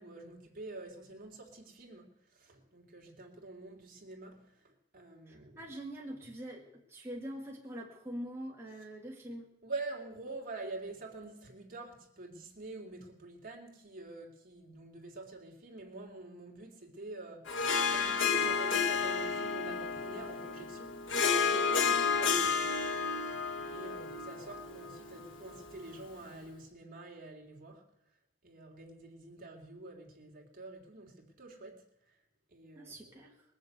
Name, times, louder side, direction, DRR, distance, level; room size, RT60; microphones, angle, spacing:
voice 1, 0.0-5.7 9.6-20.9 21.3-23.3 23.6-27.8 28.4-32.1 32.5-33.1, right 2 dB, 50° right, 3.3 m, -47 dB
voice 2, 5.3-9.5 21.8-22.5 32.7-33.4, equal, 15° right, 2.0 m, -44 dB
Harp, 17.5-26.1, left 5 dB, 85° left, 1.6 m, -32 dB
21.5 x 7.3 x 8.2 m
head